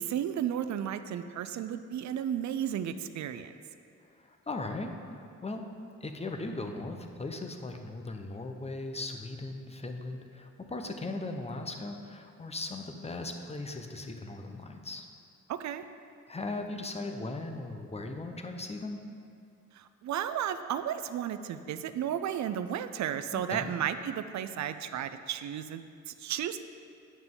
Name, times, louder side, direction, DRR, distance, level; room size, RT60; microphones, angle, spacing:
voice 1, 0.0-3.5 15.5-15.8 19.8-26.6, right 10 dB, 65° right, 11 dB, 0.5 m, -33 dB
voice 2, 4.0-5.6 6.0-15.0 16.3-19.0 23.3-23.7, left 2 dB, 20° left, 4 dB, 0.8 m, -38 dB
9.5 x 5.8 x 3.8 m, 2.3 s
cardioid pair, 70°, 31 cm